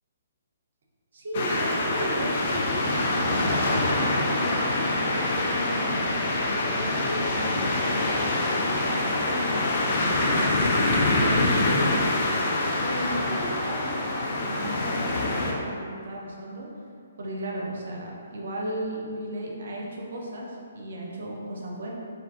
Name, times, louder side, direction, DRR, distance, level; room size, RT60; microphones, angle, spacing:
voice 1, 1.1-8.2 8.7-12.1 12.8-16.7 17.2-21.9, right 1 dB, 60° right, -2 dB, 0.4 m, -35 dB
sound 1, 1.3-15.5, left 2 dB, 45° left, 0.3 m, -25 dB
2.5 x 2.2 x 2.3 m, 2.4 s
figure-of-eight pair, 130°, 0 cm